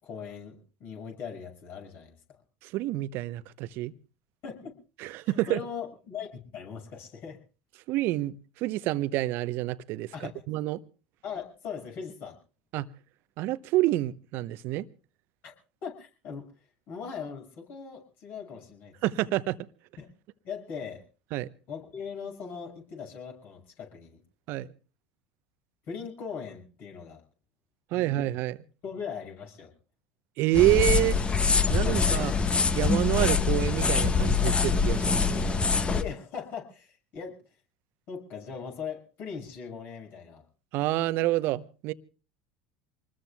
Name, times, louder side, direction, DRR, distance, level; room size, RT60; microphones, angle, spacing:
voice 1, 0.0-2.1 4.4-4.8 5.0-7.4 10.1-10.3 11.2-12.4 15.4-15.5 15.8-16.5 16.9-18.9 20.0-20.1 20.4-21.0 21.7-24.2 25.9-27.2 27.9-28.2 28.8-29.7 31.7-32.0 35.9-37.4 38.1-40.4, left 6 dB, 50° left, 6.5 m, -40 dB
voice 2, 2.6-3.9 5.0-5.6 7.9-10.8 12.7-12.9 13.4-14.8 19.0-19.6 21.3-21.5 24.5-24.7 27.9-28.6 30.4-31.2 31.7-32.3 32.7-35.5 40.7-41.9, right 16 dB, 55° right, 0.9 m, -28 dB
sound 1, 30.5-36.0, left 5 dB, 25° left, 1.3 m, -24 dB
27.0 x 20.5 x 2.3 m
hypercardioid pair, 80°, 4 cm